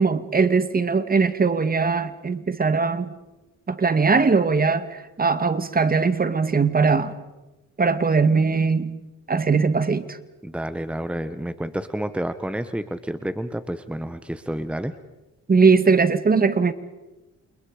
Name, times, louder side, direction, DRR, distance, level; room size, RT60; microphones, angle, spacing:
voice 1, 0.0-3.1 3.7-7.1 7.8-9.0 9.3-10.2 15.5-16.7, right 4 dB, 30° right, 2.0 m, -20 dB
voice 2, 10.4-14.9, right 1 dB, 5° right, 1.4 m, -29 dB
29.5 x 28.5 x 5.2 m
cardioid pair, 90°, 30 cm